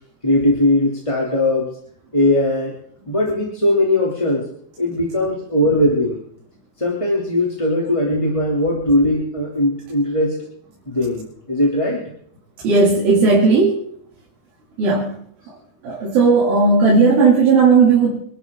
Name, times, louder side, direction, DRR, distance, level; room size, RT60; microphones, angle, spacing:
voice 1, 0.2-1.7 2.1-2.7 3.1-4.4 4.8-6.2 6.8-10.3 10.9-12.0, left 1 dB, 10° left, -3 dB, 2.5 m, -19 dB
voice 2, 12.6-13.8 14.8-15.1 15.8-18.2, right 4 dB, 75° right, -3 dB, 4.4 m, -14 dB
26.5 x 12.5 x 3.8 m, 0.62 s
omnidirectional pair, 4.2 m